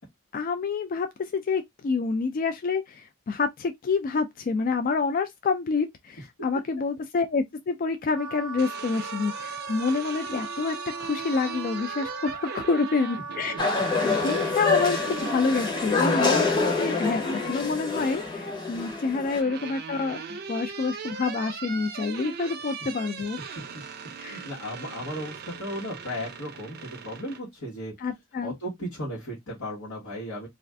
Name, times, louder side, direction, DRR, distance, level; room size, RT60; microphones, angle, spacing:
voice 1, 0.3-13.5 14.0-23.4 24.2-24.4 28.0-28.6, left 4 dB, 40° left, 0.3 m, -28 dB
Wind instrument woodwind instrument, 8.1-15.7, right 4 dB, 85° right, 0.6 m, -38 dB
sound 1, 8.3-15.5 17.0-17.7 18.9-27.4, right 6 dB, 50° right, 0.5 m, -40 dB
sound 2, 13.6-19.4, left 3 dB, 20° left, 0.8 m, -26 dB
voice 2, 24.0-27.9 28.4-30.5, equal, 85° left, 1.3 m, -36 dB
2.4 x 2.4 x 3.2 m
head